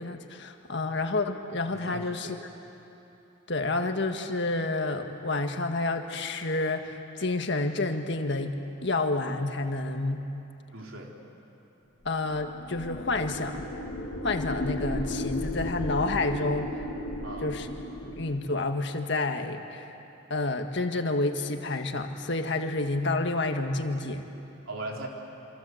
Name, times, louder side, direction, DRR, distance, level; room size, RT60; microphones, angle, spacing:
voice 1, 0.0-2.3 3.5-8.5 8.8-10.2 12.0-13.6 14.2-16.7 17.4-17.7 18.0-19.9 20.3-24.2, left 2 dB, 60° left, 5 dB, 1.7 m, -29 dB
voice 2, 1.7-2.3 10.7-11.1 17.2-17.5 24.7-25.1, right 2 dB, 90° right, 0 dB, 3.9 m, -39 dB
sound 1, 12.3-18.4, left 1 dB, 80° left, 2.8 m, -34 dB
27.5 x 26.5 x 7.9 m, 3.0 s
head